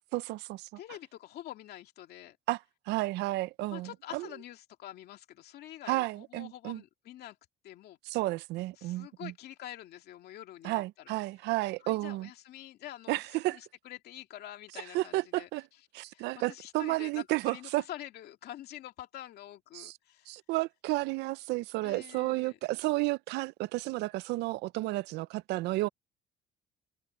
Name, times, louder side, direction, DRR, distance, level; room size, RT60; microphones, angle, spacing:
voice 1, 0.1-0.7 2.5-4.3 5.9-6.8 8.1-9.3 10.6-12.3 13.1-13.6 14.9-15.6 15.9-17.8 19.7-19.9 20.3-25.9, right 19 dB, 85° right, 0.5 m, -32 dB
voice 2, 0.8-2.4 3.7-7.4 7.6-8.0 8.8-11.1 11.8-15.5 16.1-20.3 21.8-22.6, left 13 dB, 70° left, 2.4 m, -46 dB
cardioid pair, 110°, 17 cm